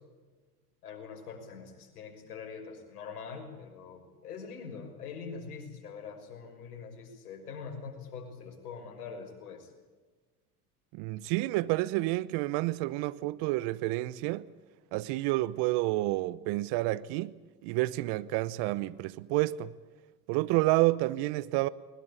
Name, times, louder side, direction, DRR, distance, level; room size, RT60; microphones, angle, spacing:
voice 1, 0.8-9.7, left 5 dB, 80° left, 6.0 m, -43 dB
voice 2, 10.9-14.5 14.9-17.3 17.6-19.7 20.3-21.7, right 18 dB, 60° right, 1.0 m, -29 dB
21.5 x 20.5 x 8.5 m
hypercardioid pair, 80°, 46 cm